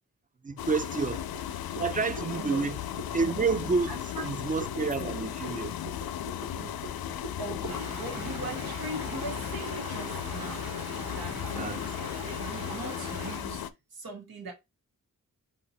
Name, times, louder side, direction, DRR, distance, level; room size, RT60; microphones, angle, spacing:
voice 1, 0.4-1.2 1.8-2.8 3.1-5.7 6.6-6.7 11.5-11.8, right 4 dB, 25° right, 0.4 m, -29 dB
sound 1, 0.6-13.7, left 10 dB, 85° left, 0.5 m, -36 dB
sound 2, 1.3-7.8, right 1 dB, 65° right, 1.9 m, -45 dB
voice 2, 2.4-2.7 3.9-4.3 4.9-5.1 7.4-10.8 11.0-11.4 12.2-14.5, right 2 dB, 90° right, 1.5 m, -40 dB
Stream, 7.6-13.4, right 1 dB, 45° right, 3.0 m, -41 dB
4.2 x 2.8 x 4.2 m
wide cardioid pair, 75°, 35 cm